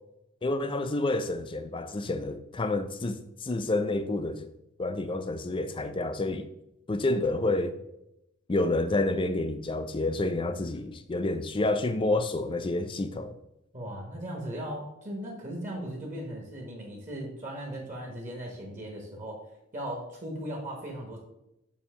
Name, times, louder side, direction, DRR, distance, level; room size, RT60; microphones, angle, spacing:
voice 1, 0.4-4.5 4.8-6.5 6.9-7.8 8.5-13.3, left 2 dB, 25° left, 0.4 m, -29 dB
voice 2, 13.7-19.4 19.7-21.2, right 1 dB, 35° right, 1.2 m, -37 dB
7.1 x 2.8 x 5.5 m
head